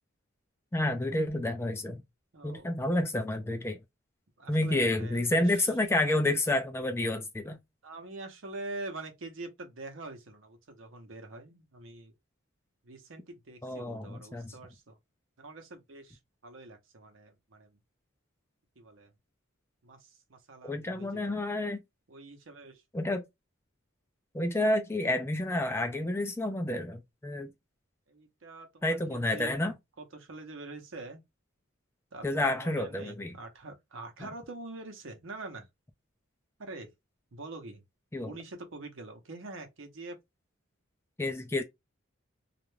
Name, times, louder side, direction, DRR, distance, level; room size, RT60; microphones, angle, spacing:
voice 1, 0.7-2.0 2.4-3.8 4.5-7.6 13.6-14.5 20.6-21.8 22.9-23.2 24.3-27.5 28.8-29.8 32.2-33.3 38.1-38.4 41.2-41.6, left 1 dB, 10° left, 0.3 m, -29 dB
voice 2, 2.3-2.7 4.4-5.6 7.8-12.1 12.8-14.9 15.4-17.8 18.8-19.1 19.8-21.4 22.1-22.8 28.1-29.5 30.0-31.2 32.1-35.7 36.6-36.9 37.3-37.8 38.2-40.2, right 2 dB, 70° right, 0.8 m, -45 dB
2.4 x 2.1 x 3.0 m
head